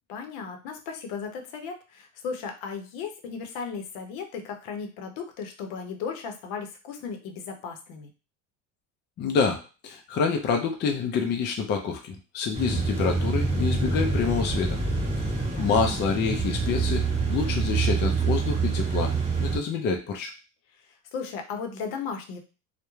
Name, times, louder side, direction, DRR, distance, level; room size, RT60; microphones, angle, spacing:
voice 1, 0.1-8.1 15.4-15.7 20.8-22.4, left 5 dB, 70° left, 4 dB, 0.7 m, -36 dB
voice 2, 9.2-14.8 15.6-19.1 19.4-20.3, left 5 dB, 30° left, 2 dB, 0.4 m, -27 dB
sound 1, 12.5-19.6, right 4 dB, 15° right, 0.8 m, -26 dB
2.3 x 2.1 x 3.0 m, 0.33 s
cardioid pair, 135°, 37 cm